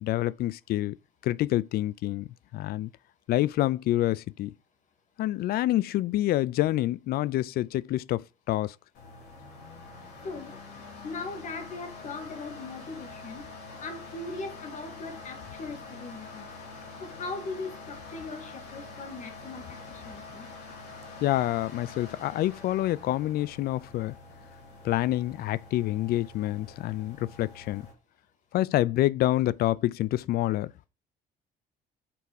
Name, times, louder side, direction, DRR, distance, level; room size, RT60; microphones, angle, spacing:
voice 1, 0.0-1.0 1.2-2.9 3.3-4.5 5.2-8.7 21.2-24.1 24.8-27.9 28.5-30.7, left 15 dB, 65° left, 0.4 m, -27 dB
sound 1, 8.9-27.9, left 3 dB, 80° left, 3.1 m, -46 dB
voice 2, 10.2-10.6 11.0-13.5 13.8-16.5 17.0-20.5, left 3 dB, 45° left, 2.0 m, -39 dB
5.9 x 4.7 x 6.4 m
cardioid pair, 110°, 17 cm